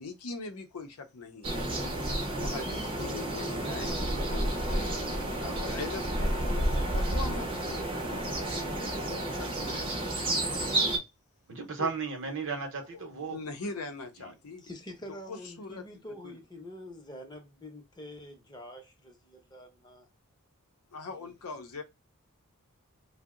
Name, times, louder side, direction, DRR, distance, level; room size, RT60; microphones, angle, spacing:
voice 1, 0.0-1.7 2.0-10.0 11.8-11.9 12.9-14.6 15.1-16.4 20.9-21.8, left 3 dB, 75° left, 0.6 m, -42 dB
sound 1, 1.4-11.0, right 1 dB, 25° right, 0.5 m, -31 dB
voice 2, 11.5-13.4 14.2-14.3, right 5 dB, 55° right, 0.7 m, -34 dB
voice 3, 14.6-20.1 21.1-21.3, left 1 dB, 20° left, 0.6 m, -46 dB
2.7 x 2.0 x 3.6 m
head